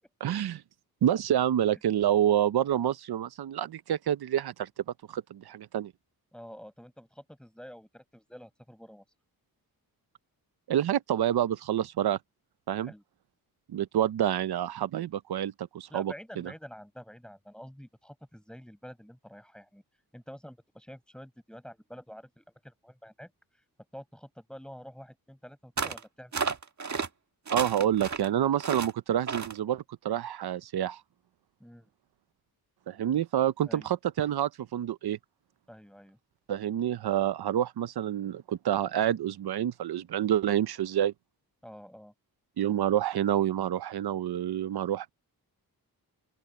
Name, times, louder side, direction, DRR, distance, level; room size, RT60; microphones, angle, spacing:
voice 1, 0.2-0.6 1.0-4.7 5.1-5.9 10.7-12.2 12.7-12.9 13.7-16.5 27.5-31.0 32.9-35.2 36.5-41.1 42.6-45.1, right 10 dB, 85° right, 0.7 m, -28 dB
voice 2, 6.3-9.0 12.8-13.0 15.9-19.8 20.1-23.3 23.9-26.6 31.6-31.9 33.7-33.9 35.7-36.2 41.6-42.1, equal, ahead, 5.2 m, -48 dB
sound 1, 25.8-26.0 26.3-27.1 27.5-28.3 28.6-28.9 29.3-29.6, right 5 dB, 50° right, 1.7 m, -32 dB
open air
wide cardioid pair, 110°, 37 cm